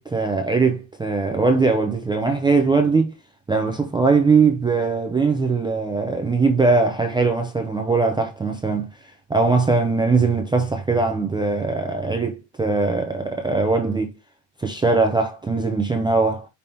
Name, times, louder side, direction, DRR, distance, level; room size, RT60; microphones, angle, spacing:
voice 1, 0.0-3.1 3.5-8.9 9.3-14.1 14.6-16.5, right 4 dB, 10° right, 0.3 m, -20 dB
5.3 x 2.8 x 3.2 m
cardioid pair, 160°, 45 cm